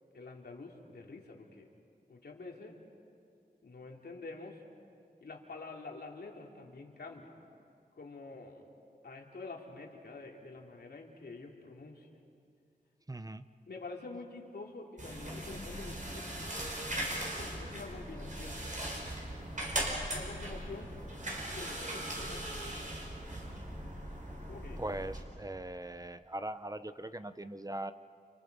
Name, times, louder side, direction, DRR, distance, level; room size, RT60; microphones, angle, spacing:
voice 1, 0.1-1.7 2.1-2.7 3.6-4.6 5.2-7.3 8.0-8.7 9.0-12.1 13.7-16.3 17.3-18.7 20.1-20.9 21.5-22.4 24.5-24.8, left 3 dB, 85° left, 0 dB, 2.9 m, -47 dB
voice 2, 13.1-13.4 24.8-27.9, right 1 dB, 20° right, 11 dB, 0.7 m, -40 dB
Raising Blinds, 15.0-25.2, right 1 dB, 50° right, 5.2 m, -39 dB
29.5 x 28.0 x 5.3 m, 2.4 s
wide cardioid pair, 85°, 16 cm